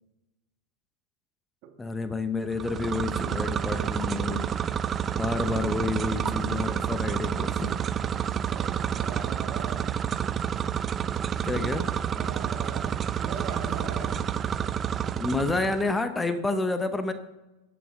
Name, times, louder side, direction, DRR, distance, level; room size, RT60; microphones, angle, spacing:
voice 1, 1.8-4.5 5.1-7.7 11.4-11.9 15.2-17.1, left 3 dB, 10° left, 9 dB, 0.9 m, -29 dB
sound 1, 2.5-15.9, right 8 dB, 25° right, 0.4 m, -29 dB
voice 2, 8.5-9.9 12.1-14.3, right 6 dB, 50° right, 6 dB, 1.6 m, -40 dB
13.5 x 9.4 x 3.7 m, 1.0 s
hypercardioid pair, 110°, 0 cm